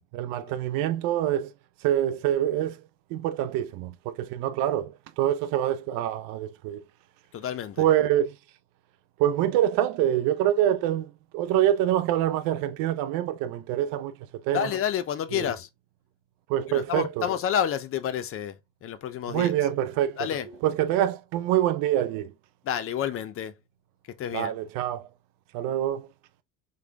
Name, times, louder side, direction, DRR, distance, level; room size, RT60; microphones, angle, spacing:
voice 1, 0.1-1.5 1.8-2.8 3.1-6.8 7.8-8.3 9.2-14.1 14.4-14.7 15.3-15.4 16.5-17.2 19.3-20.2 20.6-22.3 24.3-25.1 25.5-26.1, right 12 dB, 70° right, 0.6 m, -25 dB
voice 2, 7.3-7.9 14.5-15.7 16.7-19.7 20.2-20.6 22.6-23.5 24.1-24.5, left 9 dB, 40° left, 0.5 m, -30 dB
3.7 x 3.3 x 2.2 m
supercardioid pair, 105°, 36 cm